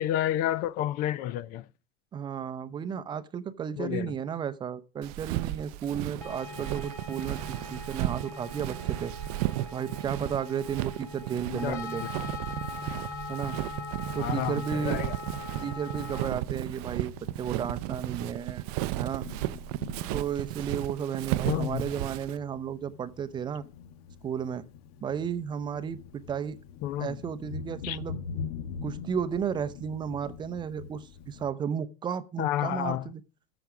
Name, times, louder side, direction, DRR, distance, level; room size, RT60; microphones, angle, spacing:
voice 1, 0.0-1.7 3.8-4.1 11.5-11.8 14.2-15.1 21.4-21.9 26.8-27.2 27.8-28.0 32.4-33.1, left 12 dB, 45° left, 0.5 m, -30 dB
voice 2, 2.1-9.1 9.7-12.0 13.3-13.6 14.1-15.0 15.6-18.7 19.0-19.3 20.1-23.6 24.2-24.6 25.0-26.6 27.0-28.2 28.8-33.2, right 8 dB, 20° right, 0.6 m, -33 dB
Walk footsteps, 5.0-22.4, right 17 dB, 65° right, 0.5 m, -34 dB
sound 1, 6.2-16.3, left 3 dB, 15° left, 3.0 m, -41 dB
Thunder, 12.1-31.5, left 6 dB, 65° left, 1.2 m, -45 dB
14.0 x 6.0 x 4.9 m
supercardioid pair, 150°, 21 cm